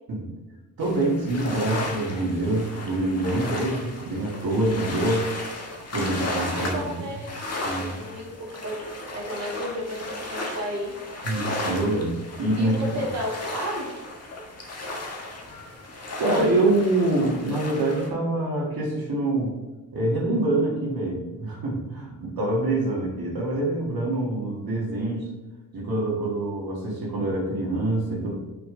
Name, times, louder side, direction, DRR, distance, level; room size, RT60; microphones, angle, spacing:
sound 1, 0.8-18.1, left 2 dB, 40° left, 1.7 m, -34 dB
voice 1, 0.8-5.3 5.9-7.1 7.6-8.0 11.2-12.7 13.0-13.1 16.2-19.5 19.9-25.3 25.7-28.4, right 2 dB, 75° right, -3 dB, 2.0 m, -25 dB
voice 2, 6.6-7.4 7.7-8.8 9.1-10.9 12.6-13.9, equal, 45° right, -3 dB, 2.0 m, -33 dB
6.5 x 5.9 x 3.9 m, 1.2 s
cardioid pair, 85°, 37 cm